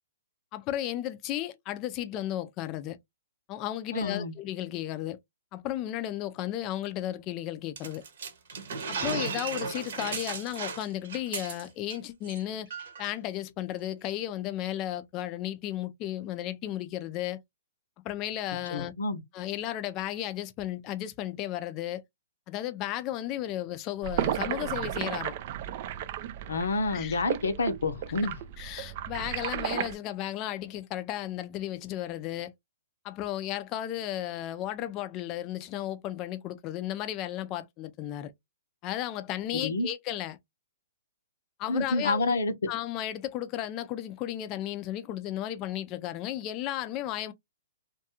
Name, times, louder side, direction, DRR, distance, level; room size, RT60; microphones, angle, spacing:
voice 1, 0.5-3.0 3.5-5.2 5.5-8.0 8.9-12.7 13.0-17.4 18.0-18.9 19.3-22.0 22.5-25.3 26.9-27.2 28.6-32.5 33.0-38.3 38.8-40.4 41.6-42.4 42.7-47.3, left 13 dB, 30° left, 0.4 m, -34 dB
voice 2, 3.9-4.3 18.7-19.2 26.5-28.4 39.6-39.9 41.7-42.7, left 2 dB, 80° left, 0.7 m, -28 dB
sound 1, 7.8-12.0 12.2-12.4 12.7-13.1, right 5 dB, 60° right, 0.9 m, -35 dB
sound 2, 24.0-29.9, right 11 dB, 45° right, 0.3 m, -34 dB
2.6 x 2.3 x 2.8 m
hypercardioid pair, 135°, 0 cm